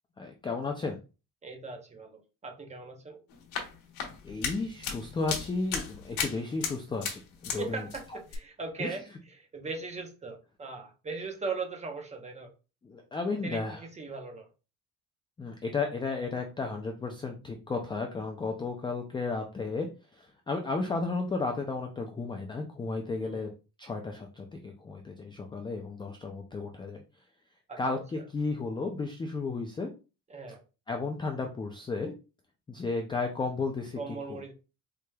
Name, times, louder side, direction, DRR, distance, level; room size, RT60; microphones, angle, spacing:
voice 1, 0.2-1.0 4.2-7.8 8.8-8.9 12.8-13.8 15.4-19.9 20.1-23.5 23.8-27.0 27.8-29.9 30.9-32.1 32.7-34.0 34.3-34.4, left 3 dB, 15° left, 3 dB, 0.3 m, -33 dB
voice 2, 1.4-3.2 7.6-12.5 13.3-14.5 23.2-23.5 27.7-28.0 30.3-30.6 34.0-34.5, right 4 dB, 20° right, 4 dB, 0.8 m, -39 dB
sound 1, 3.3-7.6 7.9-8.4, left 6 dB, 80° left, 1.2 m, -36 dB
4.7 x 2.8 x 2.2 m, 0.32 s
cardioid pair, 155°, 34 cm